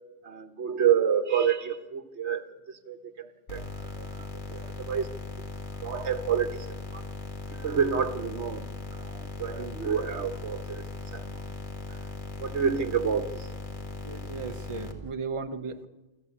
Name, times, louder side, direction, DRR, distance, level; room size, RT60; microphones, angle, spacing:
voice 1, 0.2-2.4 2.9-3.6 4.0-5.1 5.8-6.7 6.9-7.0 7.5-8.6 8.9-10.8 11.1-11.4 11.9-12.0 12.4-13.5, right 7 dB, 75° right, 9 dB, 1.5 m, -28 dB
sound 1, 3.5-14.9, left 3 dB, 45° left, 2.5 m, -39 dB
voice 2, 14.0-15.9, right 4 dB, 30° right, 7 dB, 0.9 m, -36 dB
28.0 x 12.5 x 8.6 m, 1.2 s
omnidirectional pair, 1.2 m